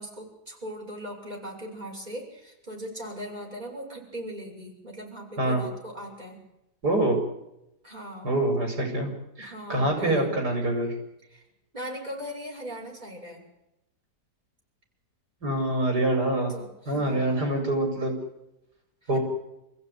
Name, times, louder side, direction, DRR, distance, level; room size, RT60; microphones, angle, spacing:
voice 1, 0.0-6.4 7.8-8.3 9.4-10.4 11.3-11.5 11.7-13.4 16.5-17.4 19.0-19.2, equal, 25° right, -1 dB, 7.1 m, -39 dB
voice 2, 6.8-7.2 8.2-9.1 9.4-10.9 15.4-16.5 16.9-18.1 19.1-19.2, right 1 dB, 75° right, 2 dB, 6.4 m, -25 dB
28.5 x 16.0 x 9.6 m, 0.88 s
omnidirectional pair, 1.8 m